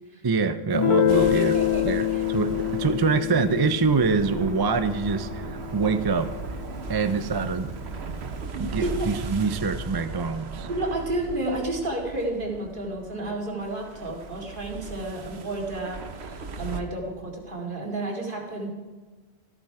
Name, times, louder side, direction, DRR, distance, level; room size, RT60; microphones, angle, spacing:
voice 1, 0.2-1.5 1.8-6.3 6.9-7.7 8.6-10.7, right 4 dB, 30° right, 11 dB, 0.4 m, -25 dB
Guitar, 0.7-6.2, left 11 dB, 60° left, 0.3 m, -26 dB
voice 2, 1.1-1.9 2.1-2.2 8.5-9.1 10.7-18.7, right 1 dB, 55° right, 0 dB, 2.5 m, -31 dB
sound 1, 1.1-16.8, right 4 dB, 85° right, 1.2 m, -37 dB
13.5 x 13.0 x 4.8 m, 1.4 s
omnidirectional pair, 1.1 m